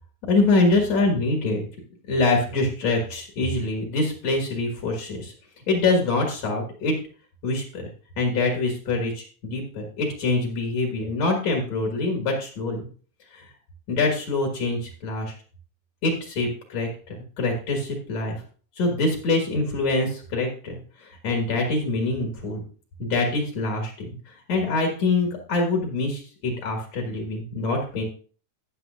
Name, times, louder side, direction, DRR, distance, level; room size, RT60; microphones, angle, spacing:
voice 1, 0.3-1.6 2.1-5.3 5.7-6.9 7.4-7.9 8.2-12.8 13.9-15.3 16.0-18.4 18.8-20.8 21.2-22.6 23.0-24.1 24.5-28.0, left 2 dB, 65° left, 1 dB, 2.7 m, -24 dB
12.5 x 9.1 x 2.5 m, 0.40 s
omnidirectional pair, 3.5 m